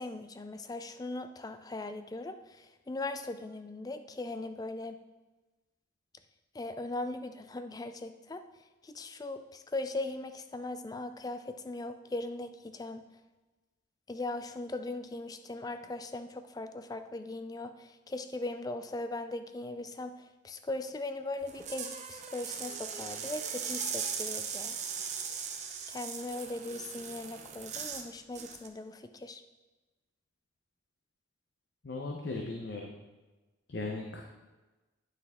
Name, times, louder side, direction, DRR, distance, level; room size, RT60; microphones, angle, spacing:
voice 1, 0.0-5.0 6.5-8.4 8.8-13.0 14.1-20.1 20.4-24.8 25.9-29.4, left 2 dB, 20° left, 9 dB, 0.3 m, -39 dB
sound 1, 21.4-28.1 28.3-28.7, right 7 dB, 35° right, 0.6 m, -39 dB
voice 2, 31.8-32.9 33.7-34.2, left 3 dB, 55° left, 1 dB, 0.7 m, -37 dB
9.3 x 5.9 x 3.6 m, 1.2 s
head